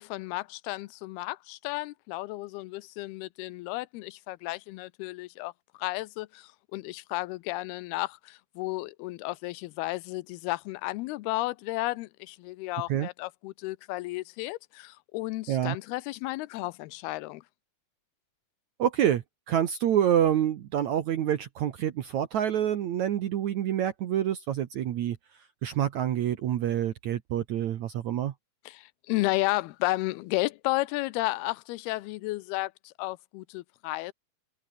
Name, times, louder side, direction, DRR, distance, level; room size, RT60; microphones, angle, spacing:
voice 1, 0.0-5.5 5.8-17.4 28.7-34.1, left 20 dB, 80° left, 2.5 m, -33 dB
voice 2, 18.8-25.2 25.6-28.3, right 10 dB, 65° right, 1.9 m, -27 dB
omnidirectional pair, 4.7 m